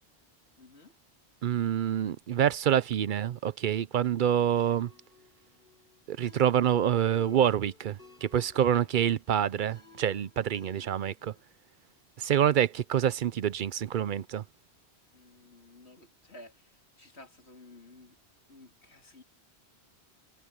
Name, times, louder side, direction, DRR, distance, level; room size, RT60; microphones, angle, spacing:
voice 1, 0.6-0.9 8.5-8.9 15.1-18.2 18.5-19.2, left 2 dB, 80° left, 3.5 m, -54 dB
voice 2, 1.4-4.9 6.1-11.3 12.2-14.4, right 10 dB, 55° right, 0.7 m, -27 dB
sound 1, 4.6-11.4, left 4 dB, 55° left, 3.6 m, -56 dB
omnidirectional pair, 1.1 m